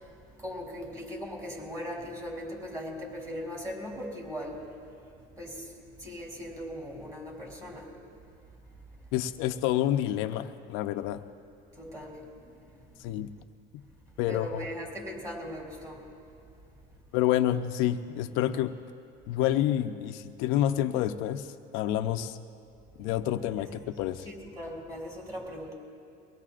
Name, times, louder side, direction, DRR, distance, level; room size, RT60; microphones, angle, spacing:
voice 1, 0.4-4.7 5.4-5.7 6.0-7.9 11.8-12.2 12.5-12.6 14.3-16.1 23.6-23.7 24.2-25.7, equal, 15° right, -2 dB, 3.7 m, -39 dB
voice 2, 9.1-11.2 13.0-13.3 14.2-14.7 17.1-18.8 19.3-21.5 21.7-22.4 23.0-24.3, left 12 dB, 90° left, 8 dB, 0.7 m, -28 dB
23.5 x 18.5 x 2.5 m, 2.6 s
cardioid pair, 135°, 20 cm